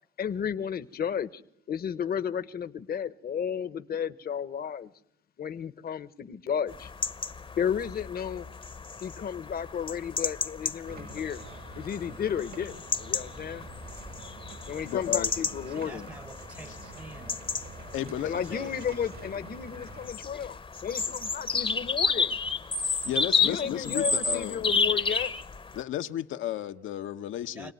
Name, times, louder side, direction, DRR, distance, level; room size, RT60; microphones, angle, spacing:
voice 1, 0.2-1.4 1.7-4.9 5.4-6.9 7.6-8.5 9.0-11.4 11.7-13.7 14.7-16.1 18.2-22.4 23.4-25.3, left 8 dB, 50° left, 1.0 m, -33 dB
sound 1, 6.7-25.8, left 4 dB, 25° left, 0.9 m, -32 dB
sound 2, 10.8-20.1, right 4 dB, 50° right, 1.5 m, -47 dB
voice 2, 14.9-15.3 17.9-18.4 21.0-21.1 22.8-24.6 25.7-27.7, left 12 dB, 80° left, 1.1 m, -33 dB
voice 3, 15.7-17.5 17.9-18.8 27.5-27.7, right 2 dB, 15° right, 1.0 m, -46 dB
26.0 x 18.0 x 9.3 m
cardioid pair, 90°, 20 cm